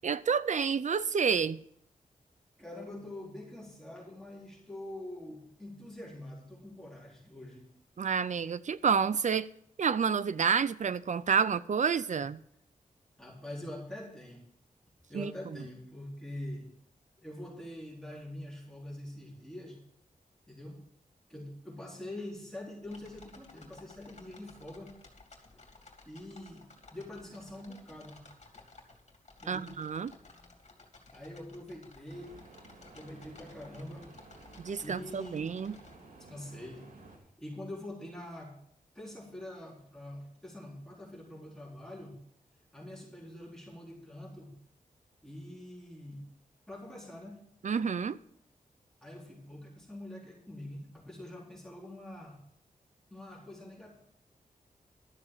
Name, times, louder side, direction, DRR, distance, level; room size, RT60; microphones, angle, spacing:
voice 1, 0.0-1.6 8.0-9.5 9.8-12.4 15.1-15.3 29.5-30.1 34.6-35.8 47.6-48.2, right 6 dB, 60° right, 16 dB, 0.5 m, -29 dB
voice 2, 2.6-7.6 13.2-14.4 15.1-16.7 17.2-19.8 20.5-20.8 21.3-24.9 26.0-26.7 26.9-28.2 29.4-29.7 31.1-32.5 32.8-34.1 34.8-35.5 36.2-36.9 37.1-38.5 38.9-42.2 42.7-44.5 45.2-46.2 46.7-47.4 49.0-52.4 53.1-53.9, left 1 dB, 5° left, -4 dB, 4.2 m, -45 dB
sound 1, 22.8-35.9, left 3 dB, 50° left, 2.7 m, -56 dB
sound 2, 32.1-37.2, right 3 dB, 90° right, 3.1 m, -54 dB
12.5 x 7.1 x 6.7 m, 0.68 s
wide cardioid pair, 90°, 14 cm